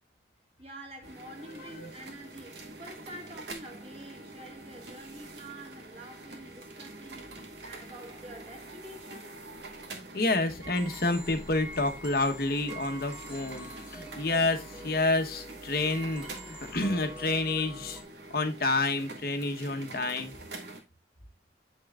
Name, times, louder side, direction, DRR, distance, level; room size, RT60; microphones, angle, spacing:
voice 1, 0.6-7.4 7.6-9.4, right 1 dB, 35° right, 2.2 m, -47 dB
sound 1, 1.0-20.8, right 2 dB, 75° right, 2.1 m, -46 dB
voice 2, 1.5-1.9 10.1-18.0 18.3-20.3, left 2 dB, 55° left, 1.1 m, -29 dB
sound 2, 10.6-18.0, right 1 dB, 5° right, 1.6 m, -45 dB
8.4 x 6.6 x 2.4 m
head